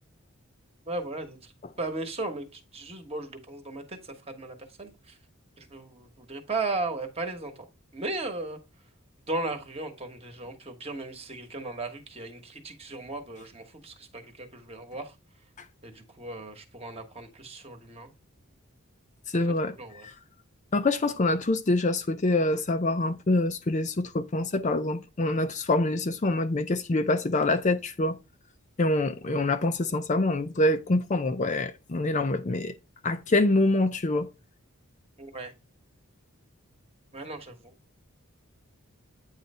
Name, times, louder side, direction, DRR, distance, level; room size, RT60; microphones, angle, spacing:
voice 1, 0.9-1.5 1.8-5.2 5.6-7.7 7.9-8.6 9.3-15.1 15.8-18.1 19.4-20.1 35.2-35.5 37.1-37.7, right 2 dB, 25° right, 1.2 m, -36 dB
voice 2, 19.3-19.7 20.0-20.1 20.7-28.2 28.8-32.7 33.0-34.3, left 2 dB, 35° left, 0.5 m, -25 dB
9.0 x 3.2 x 5.4 m
head